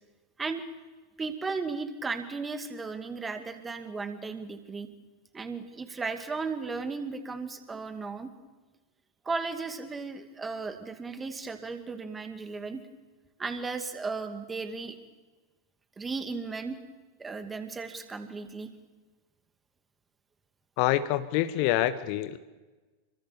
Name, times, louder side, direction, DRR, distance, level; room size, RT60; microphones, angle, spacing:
voice 1, 1.2-4.9 5.3-8.3 9.2-12.8 13.4-15.0 16.0-16.8 17.2-18.7, right 4 dB, 15° right, 8 dB, 2.4 m, -35 dB
voice 2, 20.8-22.4, left 14 dB, 45° left, 13 dB, 1.1 m, -26 dB
27.5 x 24.0 x 7.1 m, 1.2 s
figure-of-eight pair, 90°, 0 cm